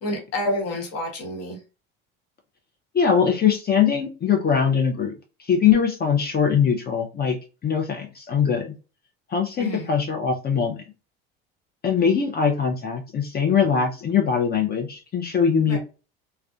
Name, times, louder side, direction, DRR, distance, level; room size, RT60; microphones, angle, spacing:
voice 1, 0.0-1.6 9.6-9.9 15.7-15.8, left 1 dB, 50° left, 1 dB, 1.2 m, -28 dB
voice 2, 2.9-5.2 5.5-7.4 7.6-8.7 9.3-10.8 11.8-15.8, left 7 dB, 30° left, 3 dB, 0.5 m, -21 dB
2.4 x 2.2 x 2.3 m, 0.32 s
supercardioid pair, 80°, 31 cm